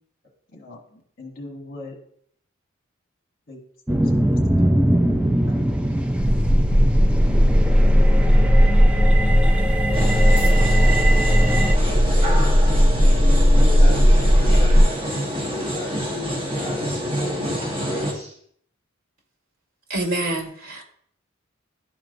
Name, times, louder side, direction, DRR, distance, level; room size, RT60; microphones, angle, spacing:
voice 1, 0.5-2.0 3.5-3.6 4.1-4.7 5.5-5.8, left 2 dB, 45° left, 2 dB, 1.3 m, -41 dB
sound 1, 3.9-11.8, right 1 dB, 5° right, 0.3 m, -22 dB
sound 2, 6.2-14.8, equal, 70° right, 0.9 m, -16 dB
sound 3, 9.9-18.1, equal, 25° right, 1.2 m, -28 dB
voice 2, 11.8-12.6 13.5-14.8 15.2-18.3, left 1 dB, 10° left, -7 dB, 2.8 m, -34 dB
voice 3, 19.9-20.8, right 2 dB, 90° right, 1 dB, 1.7 m, -26 dB
11.5 x 4.5 x 2.6 m, 0.63 s
head